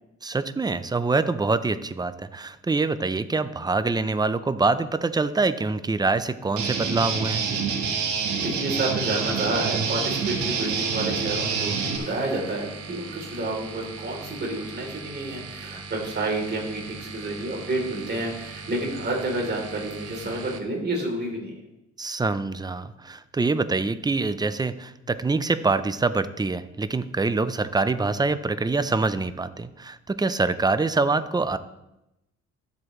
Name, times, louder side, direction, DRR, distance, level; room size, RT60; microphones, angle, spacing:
voice 1, 0.2-7.4 15.7-15.8 22.0-31.6, right 3 dB, 15° right, 13 dB, 0.5 m, -25 dB
Guitar, 6.6-12.0, right 5 dB, 75° right, 1.6 m, -27 dB
voice 2, 8.3-21.5, right 2 dB, 35° right, -1 dB, 3.5 m, -30 dB
sound 1, 9.9-20.6, right 5 dB, 55° right, 1.1 m, -40 dB
12.5 x 7.8 x 3.2 m, 0.90 s
cardioid pair, 90°, 30 cm